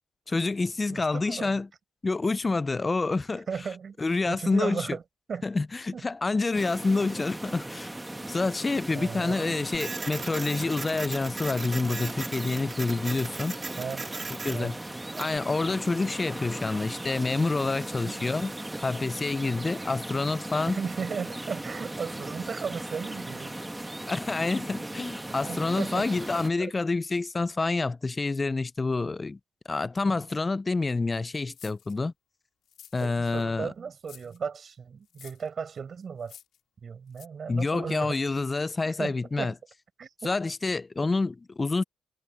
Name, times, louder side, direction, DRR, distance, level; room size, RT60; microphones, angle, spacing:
voice 1, 0.3-1.7 2.0-3.5 4.0-4.9 5.4-7.9 8.3-13.6 14.4-14.8 15.2-18.5 18.8-20.8 24.1-29.4 29.7-32.1 32.9-33.7 37.5-39.5 40.2-41.8, left 3 dB, 25° left, 0.5 m, -28 dB
voice 2, 0.9-1.6 3.5-4.0 4.3-5.0 5.3-5.5 5.9-6.0 8.9-9.6 13.8-14.0 14.5-14.7 18.0-18.3 20.7-23.5 25.3-26.7 33.0-36.3 36.8-38.2 38.8-39.5 40.0-40.3, right 6 dB, 45° right, 6.5 m, -36 dB
sound 1, 6.5-26.5, right 1 dB, 10° right, 1.8 m, -38 dB
Printer, 9.7-15.4, right 4 dB, 30° right, 2.4 m, -39 dB
sound 2, 31.5-32.0 32.6-33.3 34.0-34.4 35.1-35.5 36.2-36.6 37.1-37.3, left 10 dB, 70° left, 5.1 m, -50 dB
cardioid pair, 90°, 0 cm